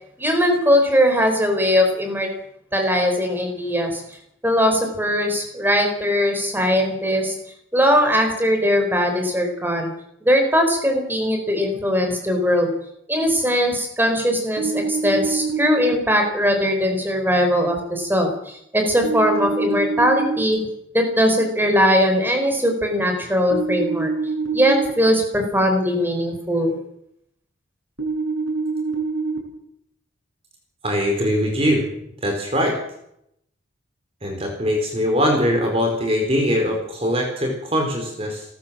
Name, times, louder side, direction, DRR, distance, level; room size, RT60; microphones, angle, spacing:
voice 1, 0.2-2.3 2.7-4.0 4.4-7.3 7.7-9.9 10.2-12.7 13.1-20.6 20.9-24.1 24.5-26.7, equal, 10° right, 4 dB, 5.0 m, -20 dB
sound 1, 14.6-15.9 19.0-20.4 23.5-24.9 28.0-29.4, right 4 dB, 80° right, 7.3 m, -25 dB
voice 2, 30.8-31.9 32.2-32.8 34.2-38.4, equal, 30° right, 2 dB, 4.5 m, -21 dB
30.0 x 13.5 x 7.6 m, 0.77 s
head